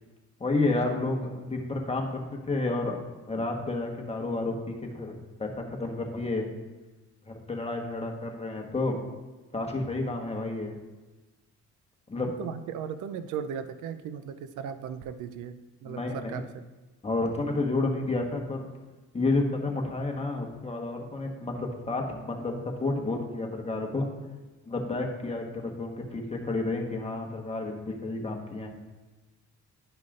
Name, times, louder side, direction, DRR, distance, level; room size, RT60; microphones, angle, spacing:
voice 1, 0.4-3.0 3.3-5.1 5.4-6.5 7.2-9.0 9.5-10.7 12.1-12.3 15.8-16.4 17.0-18.7 19.1-24.1 24.7-28.7, left 2 dB, 20° left, 1 dB, 1.3 m, -30 dB
voice 2, 12.4-15.6 15.8-16.4 18.0-18.1, right 8 dB, 80° right, 10 dB, 0.5 m, -36 dB
11.5 x 5.3 x 2.5 m, 1.2 s
cardioid pair, 90°, 30 cm